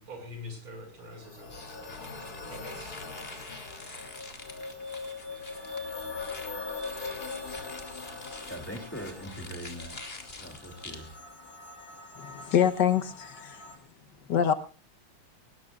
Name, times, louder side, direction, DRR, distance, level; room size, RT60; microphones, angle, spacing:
voice 1, 0.0-2.0 2.5-3.2, left 1 dB, 85° right, 7.0 m, -45 dB
sound 1, 1.0-13.8, left 4 dB, 45° left, 3.4 m, -42 dB
sound 2, 1.5-11.2, left 3 dB, 30° left, 2.7 m, -46 dB
voice 2, 8.5-10.0 10.4-11.1, right 1 dB, 5° left, 2.5 m, -41 dB
voice 3, 12.2-13.6 14.3-14.5, left 8 dB, 60° left, 1.5 m, -25 dB
20.0 x 18.0 x 2.5 m
omnidirectional pair, 2.2 m